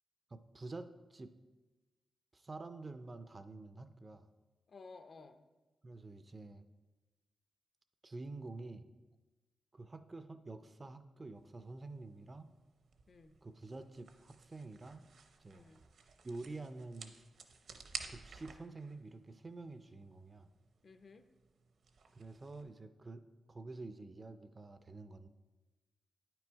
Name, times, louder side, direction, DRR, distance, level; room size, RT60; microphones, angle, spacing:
voice 1, 0.3-1.3 2.3-4.3 5.8-6.6 8.0-8.8 9.7-12.5 13.4-15.1 15.4-15.6 16.2-17.2 18.1-20.5 22.1-23.2 23.5-25.3, right 3 dB, 25° right, 10 dB, 0.4 m, -48 dB
voice 2, 4.7-5.4 13.1-13.4 15.5-15.8 20.8-21.3, left 4 dB, 45° left, 9 dB, 0.5 m, -55 dB
sound 1, 11.3-22.6, right 5 dB, 65° right, 0.7 m, -54 dB
9.5 x 6.0 x 4.6 m, 1.2 s
wide cardioid pair, 160°, 0 cm